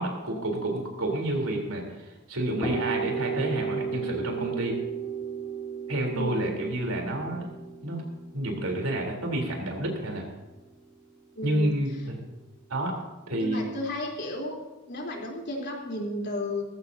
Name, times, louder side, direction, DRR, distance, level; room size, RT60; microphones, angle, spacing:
voice 1, 0.0-4.7 5.9-7.4 7.8-8.0 8.3-10.3 11.4-12.2 12.7-13.0 13.3-13.6, right 1 dB, 80° right, 1 dB, 3.8 m, -29 dB
sound 1, 2.6-10.3, right 6 dB, 25° left, 3.7 m, -34 dB
voice 2, 6.1-6.5 11.4-11.7 13.4-14.6 14.9-16.6, left 1 dB, 50° left, -1 dB, 3.7 m, -33 dB
19.5 x 15.0 x 2.8 m, 1.1 s
head